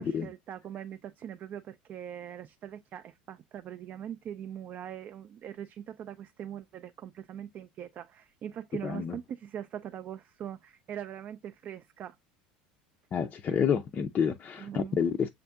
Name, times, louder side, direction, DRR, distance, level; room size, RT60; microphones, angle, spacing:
voice 1, 0.0-12.2 14.6-15.0, right 10 dB, 40° right, 0.3 m, -42 dB
voice 2, 8.8-9.2 13.1-15.3, left 7 dB, 35° left, 0.4 m, -29 dB
6.9 x 2.5 x 2.2 m
hypercardioid pair, 85°, 5 cm